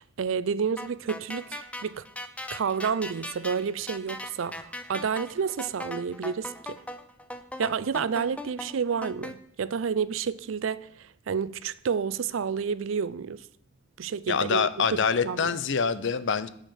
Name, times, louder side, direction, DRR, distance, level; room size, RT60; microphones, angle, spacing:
voice 1, 0.0-2.0 2.5-6.8 7.6-10.9 11.3-13.4 14.0-14.7 15.2-15.5, right 6 dB, 75° right, 0.4 m, -30 dB
sound 1, 0.8-9.3, left 1 dB, 5° left, 0.6 m, -39 dB
voice 2, 14.3-16.5, left 6 dB, 65° left, 0.6 m, -25 dB
9.0 x 5.0 x 7.2 m
head